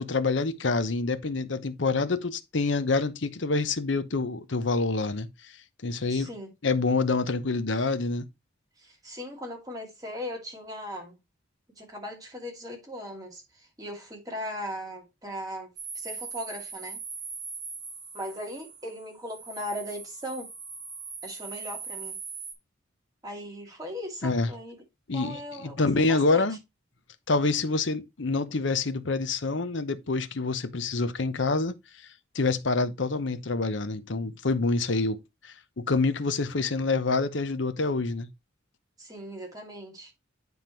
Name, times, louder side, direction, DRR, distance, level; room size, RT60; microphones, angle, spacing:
voice 1, 0.0-5.5 5.8-6.3 6.6-8.2 24.2-24.5 25.1-26.6 27.3-31.8 32.3-38.3, left 3 dB, 65° left, 0.9 m, -27 dB
voice 2, 6.1-6.5 8.8-11.2 11.8-17.0 18.1-20.5 21.2-22.2 23.2-24.8 25.1-26.5 39.0-40.1, equal, 20° right, 2.5 m, -38 dB
sound 1, 15.8-22.5, right 5 dB, 60° right, 3.0 m, -40 dB
9.4 x 3.6 x 4.5 m
head